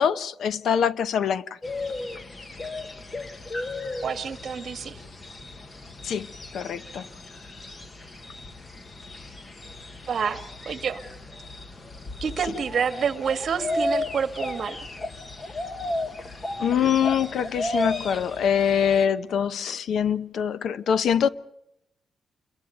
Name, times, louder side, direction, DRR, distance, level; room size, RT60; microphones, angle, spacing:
voice 1, 0.0-1.4 6.0-6.3 6.5-7.1 16.6-21.3, left 8 dB, 65° left, 0.9 m, -24 dB
sound 1, 1.6-19.1, left 2 dB, 25° left, 1.3 m, -34 dB
voice 2, 4.0-5.0 10.1-11.0 12.2-14.9, right 6 dB, 45° right, 1.8 m, -28 dB
28.5 x 22.5 x 5.2 m
wide cardioid pair, 170°, 0 cm